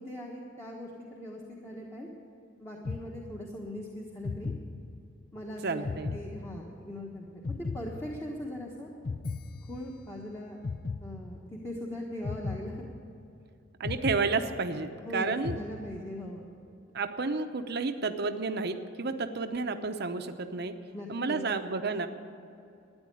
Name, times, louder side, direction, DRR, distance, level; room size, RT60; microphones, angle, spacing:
voice 1, 0.0-2.1 2.6-4.5 5.3-7.4 7.7-8.9 9.6-10.6 11.0-12.8 15.0-16.4 20.9-21.4, left 1 dB, 15° left, -2 dB, 1.3 m, -40 dB
sound 1, 2.8-3.7 4.2-5.3 5.8-7.0 7.4-8.6 9.0-10.2 10.6-11.7 12.2-13.4 13.8-15.0 15.4-16.3, left 4 dB, 50° left, 0.5 m, -38 dB
voice 2, 5.6-6.2 13.8-15.6 16.9-20.8 21.1-22.1, right 4 dB, 55° right, 8 dB, 0.8 m, -31 dB
13.0 x 9.7 x 9.9 m, 2.6 s
head